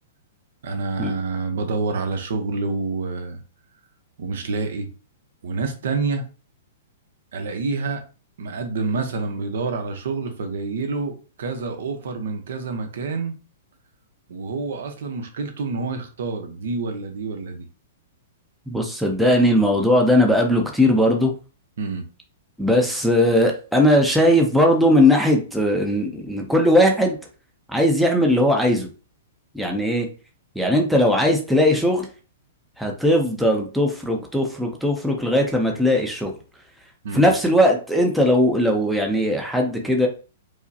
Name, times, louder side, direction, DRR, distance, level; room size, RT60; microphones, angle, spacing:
voice 1, 0.6-3.4 4.2-4.9 5.4-6.2 7.3-8.0 8.4-13.3 14.3-17.7 21.8-22.0 37.0-37.3, right 4 dB, 70° right, 6 dB, 0.7 m, -27 dB
voice 2, 18.7-21.3 22.6-27.2 27.7-28.9 29.5-30.1 30.6-32.1 32.8-36.3 37.1-40.1, left 1 dB, ahead, 1 dB, 0.5 m, -19 dB
4.8 x 2.1 x 2.7 m, 0.35 s
hypercardioid pair, 160°, 0 cm